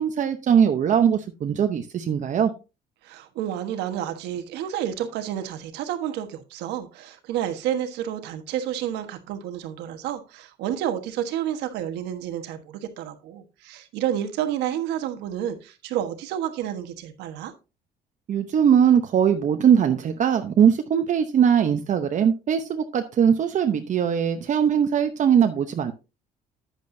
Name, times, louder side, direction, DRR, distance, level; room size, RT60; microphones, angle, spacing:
voice 1, 0.0-2.5 18.3-25.9, right 8 dB, 45° right, 6 dB, 0.8 m, -20 dB
voice 2, 3.0-17.5, right 10 dB, 90° right, 7 dB, 1.3 m, -30 dB
10.0 x 8.5 x 2.7 m, 0.30 s
cardioid pair, 110°, 17 cm